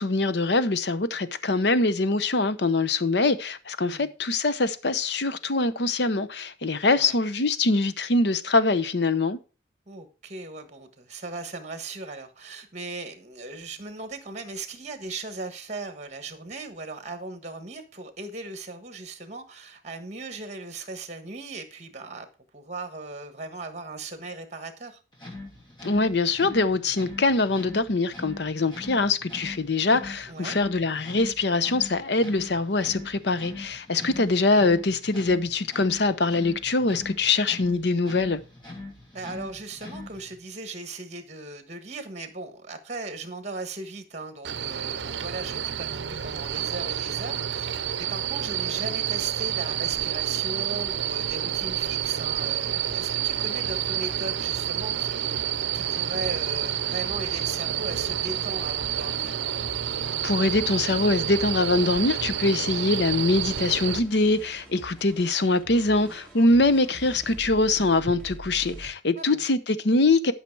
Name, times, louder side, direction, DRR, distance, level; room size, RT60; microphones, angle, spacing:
voice 1, 0.0-9.4 25.8-38.4 60.2-70.3, left 3 dB, 60° left, 0.8 m, -23 dB
voice 2, 9.9-22.3 22.5-25.0 30.3-30.6 34.0-34.3 39.1-47.7 48.1-55.5 55.7-59.4 69.1-69.4, right 3 dB, 35° right, 1.4 m, -38 dB
sound 1, 25.1-40.4, left 2 dB, 25° left, 2.7 m, -42 dB
sound 2, 44.4-64.0, right 10 dB, 70° right, 0.6 m, -29 dB
sound 3, 53.2-68.9, right 1 dB, 5° left, 2.6 m, -47 dB
11.5 x 5.8 x 4.7 m
head